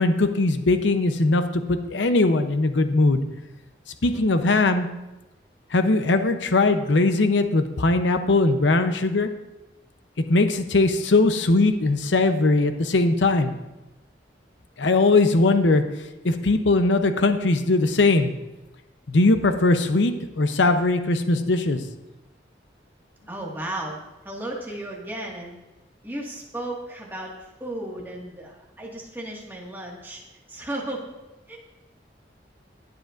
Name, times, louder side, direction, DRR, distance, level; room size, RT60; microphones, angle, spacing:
voice 1, 0.0-3.2 4.0-4.9 5.7-9.3 10.3-13.5 14.8-15.8 16.2-18.3 19.1-21.8, left 2 dB, 85° left, 8 dB, 0.7 m, -20 dB
voice 2, 23.3-25.6 26.0-30.2 30.5-31.1 31.5-31.6, right 1 dB, 10° right, -3 dB, 1.8 m, -34 dB
20.0 x 7.7 x 2.5 m, 1.0 s
head